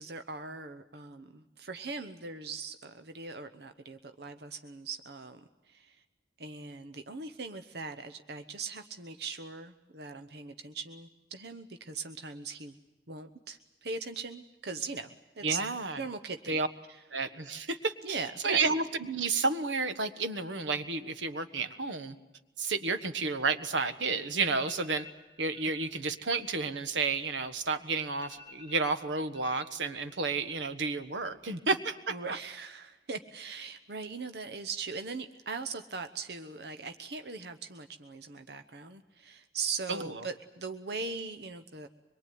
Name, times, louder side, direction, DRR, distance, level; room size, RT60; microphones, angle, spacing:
voice 1, 0.0-6.0 6.4-12.8 13.1-15.6 15.9-16.6 16.9-17.0 18.0-18.7 32.1-41.9, right 4 dB, 60° right, 8 dB, 1.0 m, -40 dB
voice 2, 15.4-16.0 16.5-16.7 17.1-18.2 18.4-22.1 22.6-25.1 25.4-32.4 39.9-40.1, right 4 dB, 90° right, 11 dB, 1.4 m, -31 dB
sound 1, 24.4-25.2 25.5-25.9 26.2-27.6 27.9-28.0 28.2-29.7 30.0-30.6 30.8-31.4, left 4 dB, 30° right, 5.4 m, -53 dB
24.0 x 22.5 x 9.4 m, 1.0 s
head